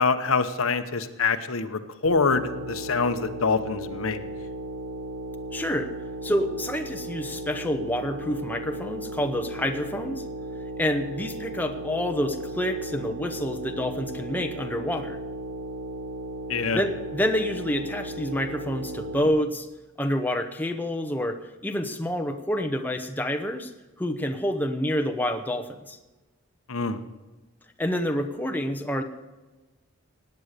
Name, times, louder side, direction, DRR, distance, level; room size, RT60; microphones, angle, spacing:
voice 1, 0.0-4.2 16.5-16.8 26.7-27.0, left 4 dB, 75° left, 9 dB, 1.0 m, -25 dB
sound 1, 2.0-19.3, right 1 dB, 85° right, 1.5 m, -36 dB
voice 2, 5.5-5.9 6.2-10.2 10.8-15.2 16.7-19.7 20.0-23.7 24.0-26.0 27.8-29.0, equal, 10° left, 6 dB, 0.9 m, -28 dB
17.0 x 9.6 x 6.7 m, 1.2 s
head